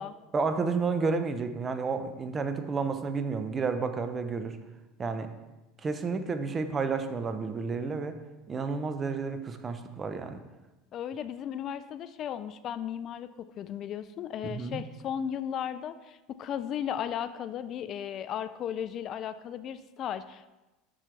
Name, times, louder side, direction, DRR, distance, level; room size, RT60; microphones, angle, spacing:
voice 1, 0.3-4.6 5.0-5.3 5.8-8.2 8.5-10.4 14.4-14.8, right 4 dB, 25° right, 9 dB, 0.7 m, -31 dB
voice 2, 10.9-20.5, left 9 dB, 45° left, 13 dB, 0.3 m, -35 dB
7.5 x 6.5 x 3.3 m, 1.1 s
hypercardioid pair, 95°, 0 cm